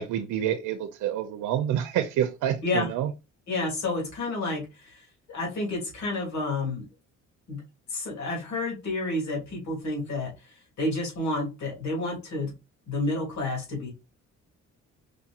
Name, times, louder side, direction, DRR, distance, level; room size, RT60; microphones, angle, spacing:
voice 1, 0.0-3.1, right 10 dB, 90° right, 0.6 m, -28 dB
voice 2, 3.5-6.8 7.5-7.6 7.9-12.5 12.9-13.9, left 2 dB, 65° left, 2.5 m, -30 dB
4.9 x 2.8 x 2.4 m
cardioid pair, 90°, 30 cm